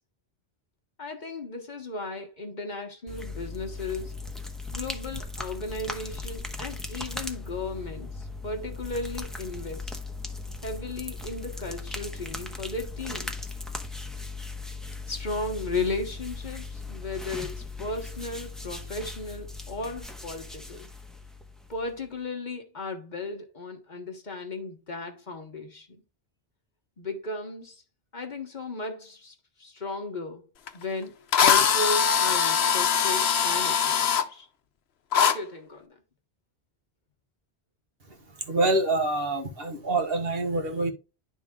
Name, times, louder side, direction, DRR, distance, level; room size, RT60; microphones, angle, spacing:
voice 1, 1.0-4.2 4.7-10.0 10.6-13.4 15.1-20.9 21.7-26.0 27.0-27.8 28.1-34.5 35.1-36.0, left 3 dB, 45° left, 1.1 m, -35 dB
sound 1, 3.1-22.0, left 3 dB, ahead, 0.8 m, -38 dB
Drill, 30.7-30.8 31.3-34.2 35.1-35.3, left 7 dB, 70° left, 1.0 m, -22 dB
voice 2, 38.5-40.9, right 2 dB, 60° right, 1.5 m, -26 dB
11.0 x 3.7 x 3.5 m
omnidirectional pair, 1.1 m